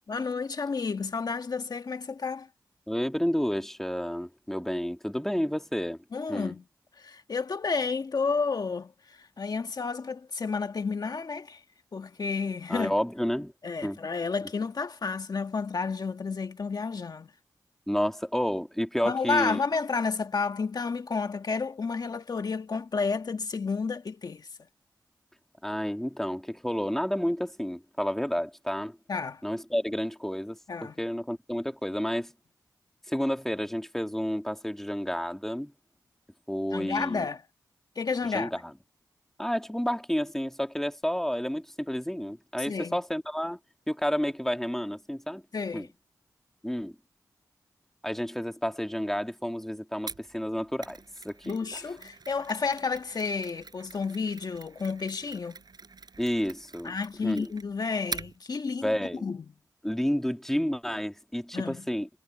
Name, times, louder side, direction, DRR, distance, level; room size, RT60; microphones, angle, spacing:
voice 1, 0.1-2.5 6.1-6.6 7.0-11.6 11.9-12.9 13.6-17.3 19.0-24.5 29.1-29.4 30.7-30.9 36.7-37.4 37.9-38.5 42.6-43.0 45.5-45.9 51.4-55.6 56.8-58.9 59.2-59.4 61.5-61.8, left 4 dB, 60° left, 1.5 m, -31 dB
voice 2, 2.9-6.5 12.7-13.5 13.8-14.0 17.9-19.6 25.6-29.0 29.4-32.3 33.1-35.7 36.5-37.3 38.3-38.7 39.4-43.6 43.9-45.4 45.7-45.9 46.6-47.0 48.0-51.8 56.2-57.5 58.8-59.3 59.8-62.1, equal, 5° left, 2.3 m, -30 dB
Mechanisms, 50.1-58.4, right 4 dB, 65° right, 6.1 m, -44 dB
cardioid pair, 45°, 8 cm